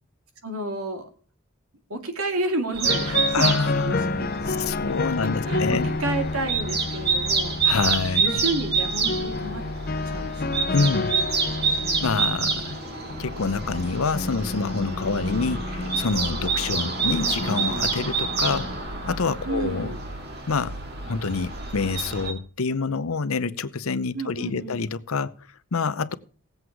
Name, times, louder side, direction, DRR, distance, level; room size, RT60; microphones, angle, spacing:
voice 1, 0.4-1.1 1.9-4.7 5.2-7.6 8.2-9.7 10.1-10.7 11.8-12.1 19.4-20.0 24.1-24.8, right 2 dB, 90° right, 2.5 m, -31 dB
sound 1, 2.7-22.3, right 4 dB, 50° right, 2.2 m, -28 dB
sound 2, 2.8-19.9, left 3 dB, 45° left, 0.6 m, -31 dB
voice 2, 3.3-4.2 4.5-5.9 7.6-8.4 10.7-11.1 12.0-12.8 13.2-20.0 20.5-20.8 21.1-25.3 25.7-26.1, left 4 dB, 80° left, 0.7 m, -27 dB
17.5 x 8.1 x 4.7 m
head